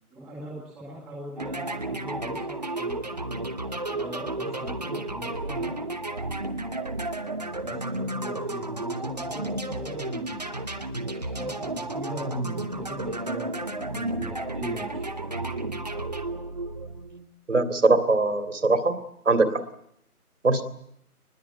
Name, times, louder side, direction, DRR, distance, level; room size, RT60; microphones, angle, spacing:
voice 1, 0.1-2.9 3.8-5.8 7.6-10.7 11.1-15.4, right 1 dB, ahead, -9 dB, 2.0 m, -40 dB
sound 1, 1.4-17.3, right 2 dB, 25° right, 1.0 m, -32 dB
voice 2, 17.5-19.0 19.3-19.6 20.4-20.6, right 3 dB, 50° right, 10 dB, 2.8 m, -21 dB
24.5 x 20.5 x 9.2 m, 0.73 s
figure-of-eight pair, 165°, 45 cm